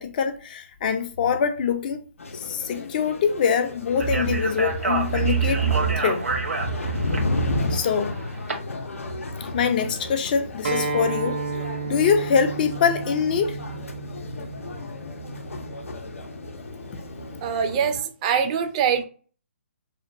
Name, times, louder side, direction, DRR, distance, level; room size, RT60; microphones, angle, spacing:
voice 1, 0.0-2.0 2.3-5.6 6.0-6.3 7.7-8.1 9.4-11.4 11.9-13.6, left 6 dB, 40° left, 0.4 m, -24 dB
sound 1, 2.2-18.0, right 2 dB, 85° left, 0.6 m, -31 dB
Speech, 4.0-8.5, right 3 dB, 85° right, 1.1 m, -29 dB
Acoustic guitar, 10.6-15.8, right 4 dB, 65° right, 0.7 m, -32 dB
voice 2, 17.4-19.0, right 7 dB, 30° right, 0.4 m, -23 dB
2.8 x 2.1 x 2.6 m
hypercardioid pair, 150°, 7 cm